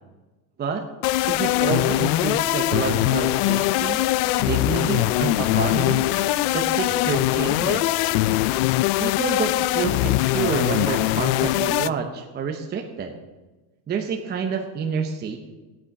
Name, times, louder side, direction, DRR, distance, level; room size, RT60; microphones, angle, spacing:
sound 1, 1.0-11.9, left 18 dB, 75° left, 0.5 m, -22 dB
voice 1, 1.3-4.0 4.4-6.0 6.5-8.0 9.0-13.1 13.9-15.4, right 6 dB, 20° right, 3 dB, 0.8 m, -28 dB
sound 2, 1.4-8.5, right 2 dB, 5° left, 2.7 m, -40 dB
16.5 x 8.8 x 5.9 m, 1.2 s
cardioid pair, 165°, 48 cm